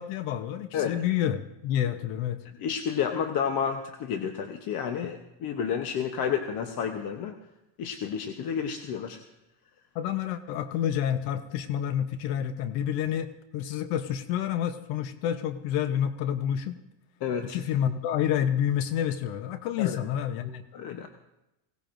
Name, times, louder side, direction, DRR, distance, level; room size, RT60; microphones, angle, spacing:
voice 1, 0.0-2.4 9.9-16.8 17.4-20.7, left 10 dB, 85° left, 10 dB, 1.0 m, -29 dB
voice 2, 2.6-7.3 7.8-9.2 17.2-17.6 19.8-20.0 20.7-21.1, left 7 dB, 45° left, 5 dB, 1.0 m, -30 dB
20.5 x 18.0 x 2.6 m, 0.94 s
cardioid pair, 160°, 50 cm